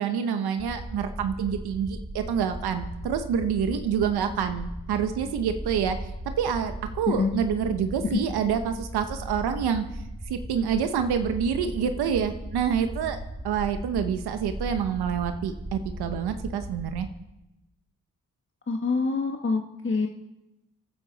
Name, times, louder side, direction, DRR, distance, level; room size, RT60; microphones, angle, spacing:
voice 1, 0.0-6.0 6.4-9.8 10.3-13.2 13.4-17.1, right 7 dB, 85° right, 8 dB, 0.9 m, -27 dB
sound 1, 0.6-17.1, right 1 dB, 20° right, 4.7 m, -37 dB
voice 2, 18.7-20.1, left 4 dB, 30° left, 3 dB, 1.2 m, -26 dB
25.5 x 9.9 x 4.0 m, 0.93 s
supercardioid pair, 50°, 37 cm